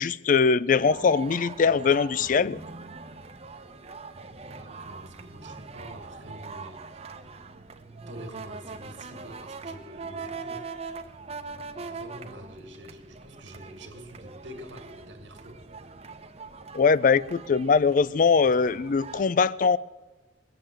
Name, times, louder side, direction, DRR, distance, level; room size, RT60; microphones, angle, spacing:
voice 1, 0.0-2.6 16.7-19.8, left 5 dB, 45° left, 0.4 m, -22 dB
sound 1, 0.7-19.3, right 4 dB, 35° right, 0.9 m, -42 dB
voice 2, 4.4-7.0 8.1-10.7 11.8-15.6, right 1 dB, 90° right, 2.1 m, -46 dB
20.0 x 7.4 x 8.9 m
head